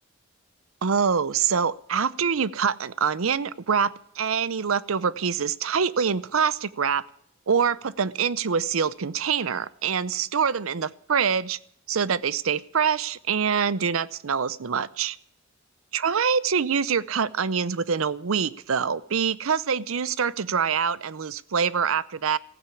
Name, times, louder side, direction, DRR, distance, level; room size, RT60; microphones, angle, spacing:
voice 1, 0.8-7.1 7.5-11.6 11.9-15.2 15.9-22.4, right 6 dB, 85° right, 19 dB, 0.6 m, -25 dB
16.0 x 9.2 x 8.3 m, 0.68 s
head